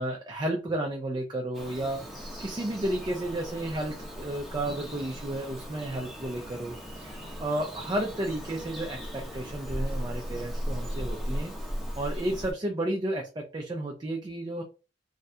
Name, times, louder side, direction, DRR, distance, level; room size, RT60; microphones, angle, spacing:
voice 1, 0.0-2.0 2.4-11.5 12.0-14.6, right 1 dB, 25° right, 1 dB, 0.4 m, -32 dB
Bird vocalization bird call bird song, 1.5-12.5, equal, ahead, 0.8 m, -37 dB
3.1 x 2.3 x 2.7 m, 0.33 s
head